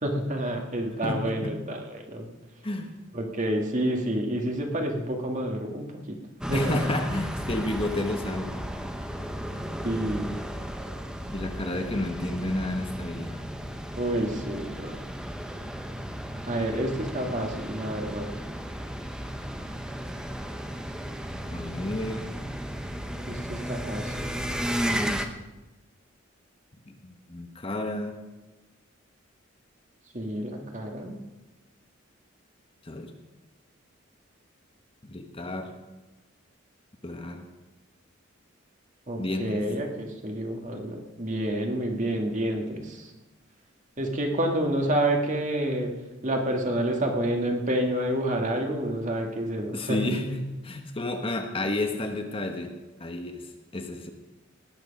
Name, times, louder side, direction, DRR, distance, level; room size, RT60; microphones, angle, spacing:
voice 1, 0.0-2.3 3.1-6.2 6.5-6.8 9.8-10.4 13.9-14.9 16.4-18.3 23.2-24.5 24.8-25.3 30.1-31.2 39.1-43.1 44.0-45.9 46.2-50.0, right 1 dB, 35° right, 2 dB, 2.0 m, -29 dB
voice 2, 1.0-1.6 2.6-3.0 6.5-8.6 11.3-13.4 21.5-22.3 26.9-28.2 32.8-33.1 35.0-35.8 37.0-37.4 39.2-39.6 42.7-42.9 49.7-52.7 53.0-54.1, left 1 dB, 25° left, 5 dB, 1.1 m, -31 dB
sound 1, 6.4-25.3, equal, 5° right, 0.8 m, -34 dB
18.5 x 9.7 x 5.4 m, 1.1 s
head